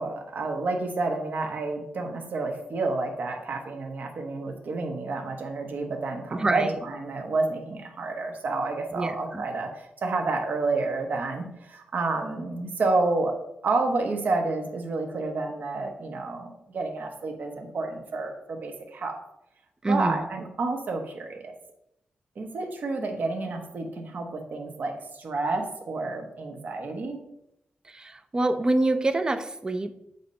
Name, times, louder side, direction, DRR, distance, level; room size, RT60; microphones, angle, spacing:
voice 1, 0.0-13.4 13.6-19.2 19.9-21.5 22.4-27.2, right 3 dB, 60° right, 3 dB, 1.1 m, -30 dB
voice 2, 6.3-6.8 8.9-9.4 19.8-20.2 27.9-29.9, right 2 dB, 25° right, 9 dB, 0.5 m, -26 dB
8.0 x 2.8 x 5.2 m, 0.79 s
wide cardioid pair, 115°, 3 cm